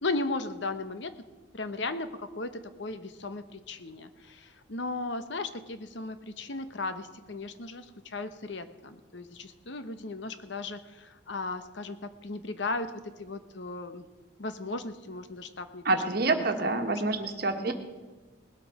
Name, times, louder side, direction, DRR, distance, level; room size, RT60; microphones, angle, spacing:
voice 1, 0.0-1.1 1.5-14.0 14.4-15.8 16.2-16.5 16.8-16.9, left 3 dB, 65° left, 11 dB, 0.9 m, -36 dB
voice 2, 15.8-17.7, right 3 dB, 50° right, 6 dB, 1.4 m, -27 dB
19.0 x 8.3 x 6.3 m, 1.3 s
head